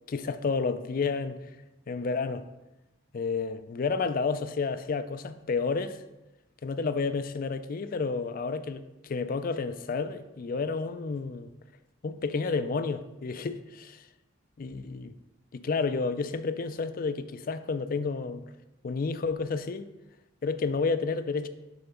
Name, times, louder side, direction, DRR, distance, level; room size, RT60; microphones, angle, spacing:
voice 1, 0.1-1.4 1.9-2.5 3.1-6.0 6.6-8.8 9.1-11.5 12.0-14.0 14.6-15.1 15.5-18.5 18.8-19.9 20.4-21.5, left 4 dB, 45° left, 0.4 m, -30 dB
6.8 x 3.9 x 5.7 m
head